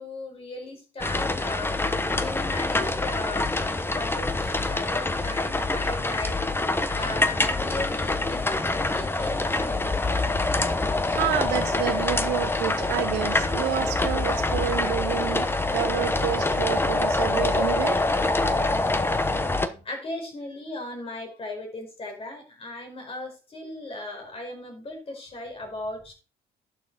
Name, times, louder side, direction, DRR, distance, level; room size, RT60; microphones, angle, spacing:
voice 1, 0.0-6.4 6.9-9.9 19.8-26.1, left 2 dB, 35° left, 4.7 m, -37 dB
sound 1, 1.0-19.7, left 2 dB, 15° left, 1.0 m, -25 dB
sound 2, 5.2-19.8, left 1 dB, 5° right, 4.7 m, -51 dB
voice 2, 10.8-18.0, right 13 dB, 80° right, 0.8 m, -29 dB
11.5 x 6.8 x 4.1 m
cardioid pair, 110°, 17 cm